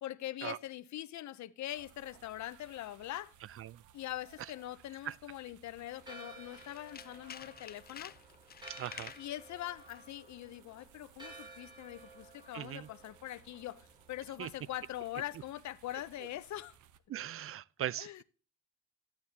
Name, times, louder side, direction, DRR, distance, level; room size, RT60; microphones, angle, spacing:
voice 1, 0.0-3.3 3.9-8.1 9.2-16.8 18.0-18.2, left 13 dB, 70° left, 0.7 m, -43 dB
sound 1, 1.7-17.0, right 9 dB, 80° right, 0.8 m, -62 dB
Church bell, 6.0-14.9, right 3 dB, 15° right, 3.1 m, -55 dB
Tools, 6.5-9.3 9.8-10.1 10.4-10.5, left 8 dB, 30° left, 0.4 m, -50 dB
voice 2, 8.7-9.1 12.5-12.9 14.4-14.5 17.1-18.1, right 11 dB, 45° right, 0.4 m, -39 dB
13.5 x 9.6 x 2.8 m
cardioid pair, 90°, 30 cm